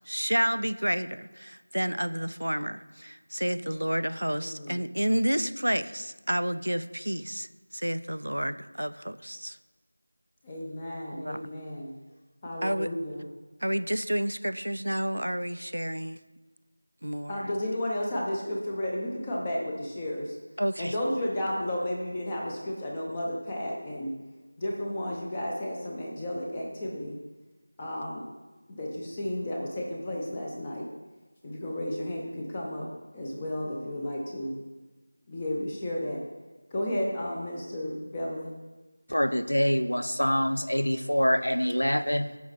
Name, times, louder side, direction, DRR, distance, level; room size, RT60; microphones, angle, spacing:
voice 1, 0.1-7.5 7.7-9.6 11.1-11.5 12.6-12.9 13.6-16.2 17.0-17.5 20.6-20.9, equal, 90° right, 13 dB, 0.5 m, -30 dB
voice 2, 4.4-4.8 10.4-11.9 12.4-13.3 17.3-20.4 20.8-24.1 24.6-27.2 27.8-28.3 28.7-30.9 31.4-32.9 33.1-34.5 35.3-36.2 36.7-38.5, left 1 dB, 20° left, -2 dB, 0.7 m, -33 dB
voice 3, 39.1-42.4, equal, 85° left, 11 dB, 0.6 m, -25 dB
10.5 x 5.1 x 4.2 m, 1.2 s
figure-of-eight pair, 170°, 0 cm